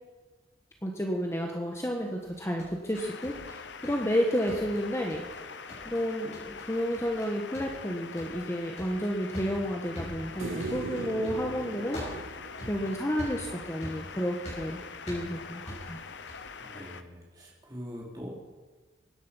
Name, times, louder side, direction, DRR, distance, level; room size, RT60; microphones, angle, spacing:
voice 1, 0.8-5.2 5.8-12.0 12.6-16.0, equal, 15° left, 1 dB, 1.3 m, -31 dB
sound 1, 2.2-4.2 4.5-5.4 5.7-6.0 6.3-6.7 6.9-7.3 7.5-16.5, equal, 35° left, 6.8 m, -44 dB
sound 2, 2.9-17.0, left 5 dB, 65° left, 0.9 m, -44 dB
sound 3, 10.4-13.7 16.2-16.3, right 4 dB, 85° right, 0.5 m, -39 dB
voice 2, 16.6-18.3, equal, 20° right, -3 dB, 3.9 m, -43 dB
24.0 x 10.5 x 5.6 m, 1.3 s
head